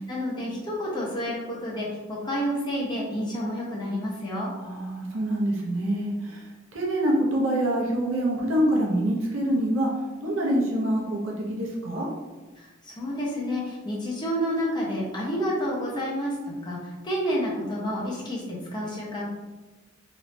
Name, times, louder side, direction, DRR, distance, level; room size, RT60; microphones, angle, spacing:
voice 1, 0.0-4.5 12.6-19.3, equal, 20° left, -5 dB, 0.8 m, -29 dB
voice 2, 4.6-9.9 10.2-12.1, right 1 dB, 85° right, -2 dB, 0.7 m, -26 dB
3.1 x 2.6 x 3.1 m, 1.2 s
head